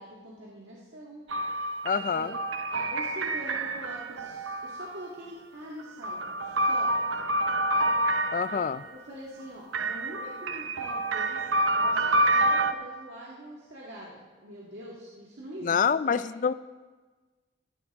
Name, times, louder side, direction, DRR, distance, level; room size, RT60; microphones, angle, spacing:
voice 1, 0.0-2.4 2.7-6.9 8.5-16.2, right 1 dB, 65° right, -5 dB, 1.8 m, -44 dB
sound 1, 1.3-5.1 5.8-8.9 9.7-12.7, right 1 dB, 80° right, 0.7 m, -28 dB
voice 2, 1.8-2.4 8.3-8.8 15.6-16.5, left 6 dB, 40° left, 16 dB, 0.3 m, -26 dB
15.0 x 14.0 x 3.6 m, 1.4 s
head